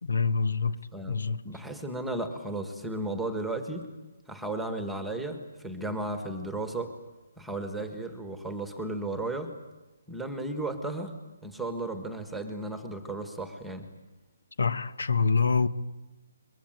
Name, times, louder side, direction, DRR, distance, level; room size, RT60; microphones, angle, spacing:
voice 1, 0.0-0.7 1.1-1.4 14.6-15.7, left 5 dB, 80° left, 1.3 m, -25 dB
voice 2, 1.4-3.9 4.3-6.9 7.4-9.5 10.1-11.2 11.4-13.9, right 2 dB, ahead, 1.6 m, -34 dB
23.0 x 22.5 x 9.1 m
hypercardioid pair, 165°, 0 cm